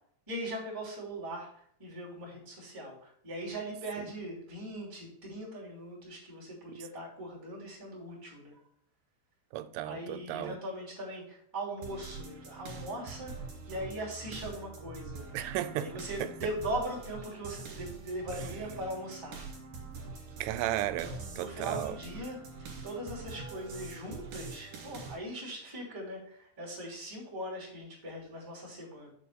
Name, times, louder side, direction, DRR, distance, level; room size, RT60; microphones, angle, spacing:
voice 1, 0.3-8.6 9.8-15.2 15.7-19.5 21.0-29.1, right 1 dB, 5° right, 1.7 m, -40 dB
voice 2, 9.5-10.6 15.3-15.9 16.2-16.3 20.4-22.0, right 13 dB, 90° right, 3.1 m, -34 dB
sound 1, 11.8-25.2, right 4 dB, 55° right, 2.6 m, -44 dB
7.1 x 4.1 x 6.7 m
omnidirectional pair, 5.5 m